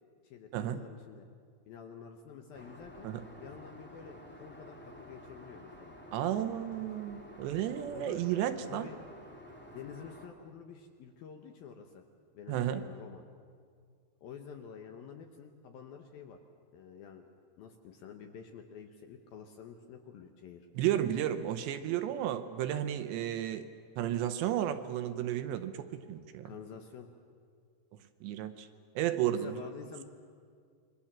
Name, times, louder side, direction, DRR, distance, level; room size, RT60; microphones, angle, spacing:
voice 1, 0.2-1.3 1.7-3.1 3.4-6.0 7.9-8.4 8.7-9.0 9.7-12.0 12.3-13.2 14.2-16.4 16.7-17.3 17.6-20.7 26.5-27.1 29.3-30.0, left 7 dB, 70° left, 5 dB, 2.4 m, -49 dB
Aircraft, 2.5-10.3, equal, 10° left, 0.5 m, -51 dB
voice 2, 6.1-8.9 12.5-12.8 20.8-23.7 24.0-26.5 28.2-28.7 29.0-29.6, right 11 dB, 75° right, 9 dB, 2.9 m, -33 dB
27.5 x 23.0 x 7.4 m, 2.1 s
omnidirectional pair, 5.4 m